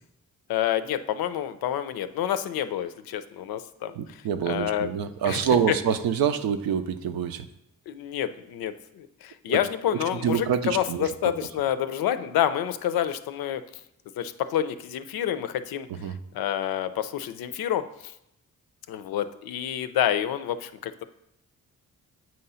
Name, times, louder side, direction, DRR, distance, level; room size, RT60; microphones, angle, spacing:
voice 1, 0.5-4.9 5.2-5.5 7.9-13.6 14.2-18.1 18.9-21.0, left 10 dB, 85° left, 12 dB, 0.5 m, -28 dB
voice 2, 4.0-7.5 9.5-9.6 10.2-11.1 15.9-16.2, right 7 dB, 90° right, 9 dB, 0.5 m, -26 dB
7.5 x 2.8 x 5.5 m, 0.84 s
cardioid pair, 60°, 35 cm